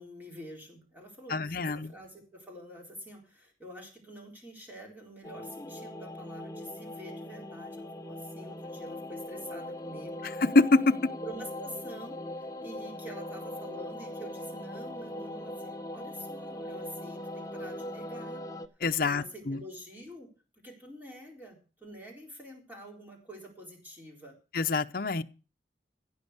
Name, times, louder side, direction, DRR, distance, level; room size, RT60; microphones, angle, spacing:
voice 1, 0.0-10.2 11.2-18.4 19.0-20.3 20.6-24.4, equal, 10° right, 3.9 m, -47 dB
voice 2, 1.3-1.9 10.2-11.1 18.8-19.6 24.5-25.2, left 3 dB, 55° left, 0.7 m, -25 dB
sound 1, 5.2-18.7, left 1 dB, 20° left, 0.8 m, -40 dB
16.0 x 5.4 x 8.1 m
head